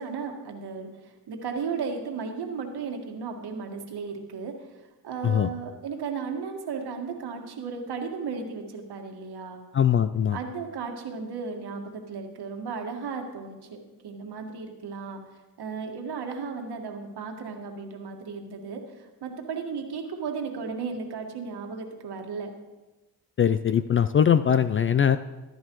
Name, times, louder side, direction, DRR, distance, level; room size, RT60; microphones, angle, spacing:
voice 1, 0.0-4.6 5.0-9.6 10.3-15.2 15.6-22.5, right 5 dB, 60° right, 3 dB, 1.8 m, -35 dB
voice 2, 9.7-10.4 23.4-25.2, left 8 dB, 30° left, 12 dB, 0.4 m, -21 dB
14.0 x 10.5 x 3.1 m, 1.1 s
supercardioid pair, 65°, 43 cm